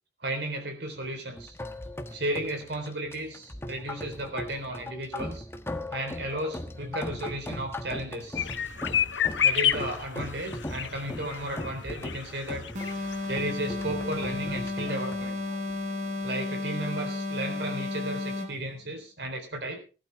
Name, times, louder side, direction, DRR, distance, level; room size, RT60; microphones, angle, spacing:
voice 1, 0.2-1.5 2.1-5.5 5.9-8.5 9.4-12.7 13.0-15.4 16.2-19.8, right 1 dB, 65° right, 5 dB, 3.8 m, -34 dB
sound 1, 1.4-16.2, left 1 dB, 15° left, 1.2 m, -39 dB
sound 2, 8.3-13.5 13.8-13.9 14.1-14.2, left 8 dB, 80° left, 1.1 m, -30 dB
sound 3, 12.7-18.6, left 2 dB, 45° right, 3.5 m, -33 dB
19.0 x 12.0 x 3.5 m, 0.34 s
head